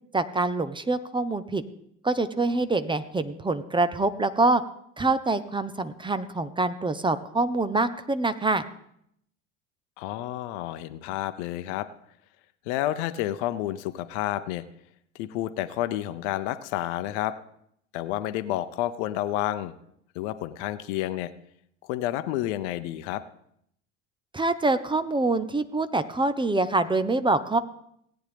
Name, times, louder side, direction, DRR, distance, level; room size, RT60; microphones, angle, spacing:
voice 1, 0.1-1.6 2.0-4.6 5.0-8.6 24.3-27.6, right 2 dB, 15° right, 12 dB, 0.7 m, -25 dB
voice 2, 10.0-11.9 12.7-14.6 15.1-17.4 17.9-19.7 20.1-21.3 21.8-23.2, left 13 dB, 65° left, 14 dB, 0.8 m, -30 dB
17.5 x 9.0 x 3.4 m, 0.72 s
hypercardioid pair, 70°, 38 cm